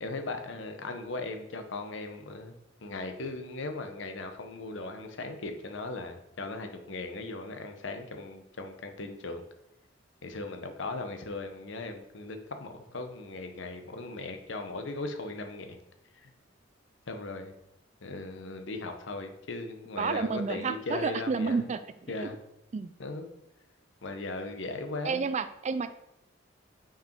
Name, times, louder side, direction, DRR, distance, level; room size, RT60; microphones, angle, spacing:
voice 1, 0.0-2.5 2.8-9.4 10.2-15.8 16.2-16.3 17.1-17.5 18.0-21.7 22.1-22.4 23.0-23.3 24.0-25.2, left 2 dB, 70° left, 6 dB, 0.9 m, -38 dB
voice 2, 20.0-21.8 22.7-22.9 25.0-25.9, right 5 dB, 35° right, 12 dB, 0.4 m, -30 dB
5.7 x 5.0 x 4.5 m, 0.84 s
head